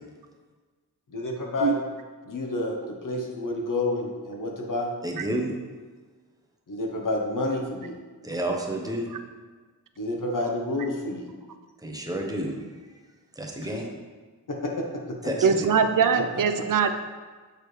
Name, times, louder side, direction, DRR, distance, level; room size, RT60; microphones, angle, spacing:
voice 1, 1.1-1.8 2.2-4.9 6.7-7.9 10.0-11.3 14.5-15.0 16.1-16.2 16.6-16.7, left 2 dB, 55° left, 0 dB, 1.0 m, -29 dB
voice 2, 5.0-5.5 8.2-9.1 11.8-12.6 13.4-13.8 15.2-15.7, right 1 dB, 10° right, 1 dB, 0.9 m, -30 dB
voice 3, 15.4-16.9, right 6 dB, 55° right, 8 dB, 0.5 m, -21 dB
6.6 x 4.7 x 3.3 m, 1.4 s
wide cardioid pair, 70°, 38 cm